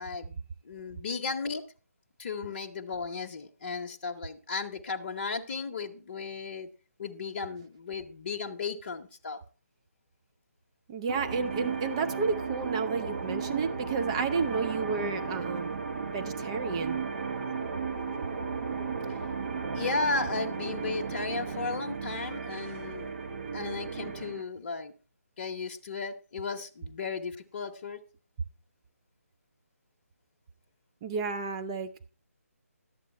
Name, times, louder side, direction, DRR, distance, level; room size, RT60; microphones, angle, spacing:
voice 1, 0.0-1.6 2.2-6.7 7.0-9.4 19.1-19.2 19.7-23.1 23.5-24.9 25.4-28.0, left 4 dB, 40° left, 3 dB, 0.9 m, -35 dB
voice 2, 10.9-15.7 16.1-17.0 31.0-32.1, right 5 dB, 20° right, 8 dB, 0.4 m, -31 dB
sound 1, 11.1-24.4, right 5 dB, 50° right, 1.5 m, -34 dB
11.5 x 8.3 x 4.3 m, 0.37 s
figure-of-eight pair, 150°, 8 cm